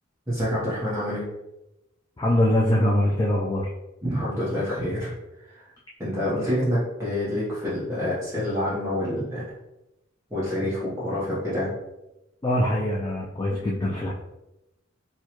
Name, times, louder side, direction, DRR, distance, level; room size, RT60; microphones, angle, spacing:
voice 1, 0.3-1.3 4.0-5.1 5.5-5.7 6.0-9.5 10.3-11.8, left 1 dB, 15° right, -10 dB, 0.9 m, -27 dB
voice 2, 2.2-3.7 12.4-14.1, left 1 dB, 20° left, -3 dB, 0.3 m, -23 dB
4.5 x 2.2 x 2.9 m, 0.94 s
head